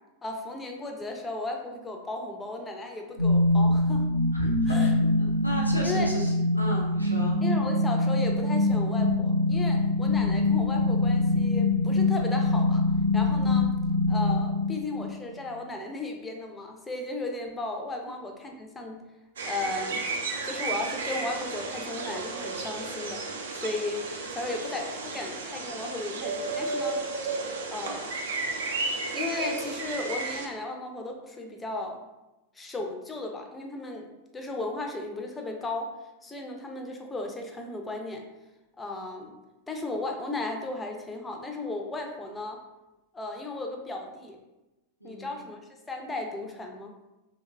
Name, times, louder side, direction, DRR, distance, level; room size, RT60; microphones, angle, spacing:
voice 1, 0.2-4.1 4.7-4.9 5.8-6.1 7.4-12.8 13.1-13.7 14.1-19.0 19.4-20.1 20.4-23.2 23.5-24.0 24.3-27.0 27.7-28.2 29.1-32.0 32.5-34.1 34.3-35.9 36.2-38.3 38.8-39.3 39.7-42.6 43.1-44.4 45.0-45.6 45.9-46.9, left 2 dB, 15° left, 2 dB, 0.4 m, -35 dB
sound 1, 3.2-15.2, left 2 dB, 85° right, 0.7 m, -24 dB
voice 2, 4.3-4.9 5.2-7.4 45.0-45.4, equal, 85° left, -3 dB, 0.5 m, -35 dB
sound 2, 19.4-30.5, right 3 dB, 65° right, 0.3 m, -33 dB
3.1 x 2.1 x 2.2 m, 1.0 s
figure-of-eight pair, 90°, 0 cm